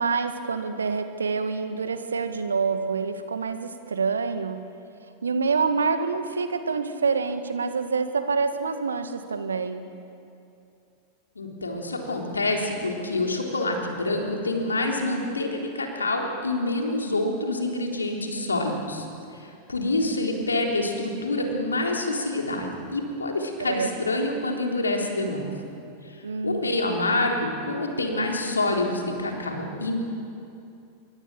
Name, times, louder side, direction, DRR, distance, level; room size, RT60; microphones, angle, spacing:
voice 1, 0.0-4.6 5.2-9.9 23.6-23.9 26.2-26.8, right 5 dB, 70° right, 9 dB, 1.8 m, -27 dB
voice 2, 11.4-19.1 19.4-25.5 26.0-26.2 26.4-30.0, left 2 dB, 75° left, 1 dB, 3.8 m, -27 dB
27.0 x 23.0 x 7.5 m, 2.6 s
figure-of-eight pair, 90°, 0 cm